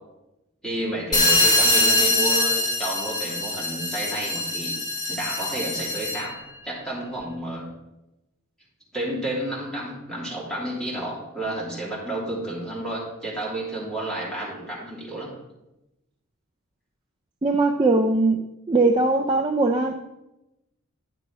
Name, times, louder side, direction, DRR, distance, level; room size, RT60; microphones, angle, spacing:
voice 1, 0.6-4.7 5.1-6.3 6.6-7.7 8.9-15.3, right 1 dB, 5° left, -6 dB, 3.2 m, -31 dB
sound 1, 1.1-6.3, left 2 dB, 20° left, 1.5 m, -23 dB
voice 2, 17.4-20.0, right 2 dB, 20° right, 2 dB, 0.4 m, -21 dB
11.0 x 6.0 x 4.8 m, 0.94 s
head